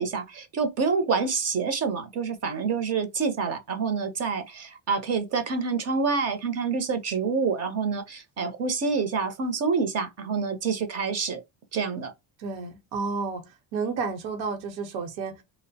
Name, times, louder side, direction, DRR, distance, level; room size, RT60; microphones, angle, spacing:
voice 1, 0.0-11.4 11.7-12.1, right 5 dB, 35° right, 0.5 m, -27 dB
voice 2, 12.4-13.4 13.7-15.4, right 4 dB, 75° right, 0.9 m, -31 dB
2.6 x 2.0 x 2.6 m
cardioid pair, 130°, 45 cm